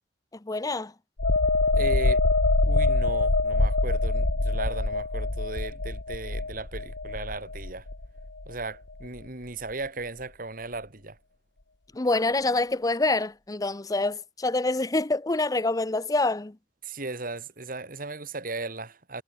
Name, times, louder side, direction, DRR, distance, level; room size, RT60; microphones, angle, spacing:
voice 1, 0.4-0.9 11.9-16.6, left 2 dB, 20° left, 0.6 m, -26 dB
sound 1, 1.2-8.6 9.0-9.2, left 2 dB, 85° left, 1.7 m, -25 dB
voice 2, 1.8-2.2 2.6-7.9 8.5-11.2 16.8-19.2, right 3 dB, 50° right, 2.7 m, -36 dB
head